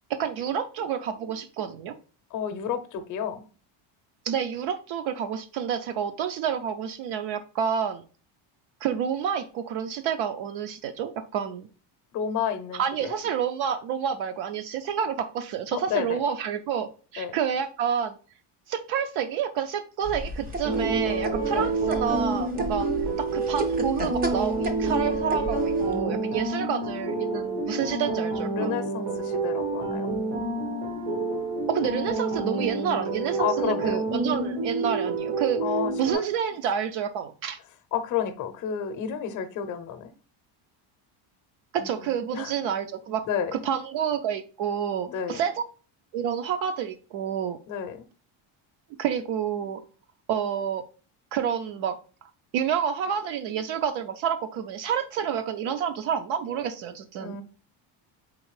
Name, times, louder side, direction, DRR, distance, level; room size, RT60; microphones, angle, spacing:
voice 1, 0.1-1.9 4.2-8.0 8.8-11.7 12.7-18.2 18.7-22.9 23.2-28.7 31.7-35.6 36.0-37.6 41.7-43.2 43.5-45.6 46.1-47.6 49.0-49.8 50.3-50.8 51.3-52.0 52.5-57.4, right 8 dB, 70° right, 0.6 m, -29 dB
voice 2, 2.3-3.4 12.1-13.1 15.7-16.2 17.2-17.3 21.5-21.7 28.5-30.1 33.4-34.0 35.6-36.2 37.9-40.1 41.8-42.5 43.2-43.6 45.1-45.4 47.7-48.0 57.2-57.4, left 8 dB, 40° left, 0.6 m, -31 dB
sound 1, 20.0-26.0, right 1 dB, 20° right, 0.4 m, -33 dB
sound 2, 20.6-36.1, right 3 dB, 90° right, 1.5 m, -28 dB
4.3 x 3.8 x 3.1 m
cardioid pair, 175°, 49 cm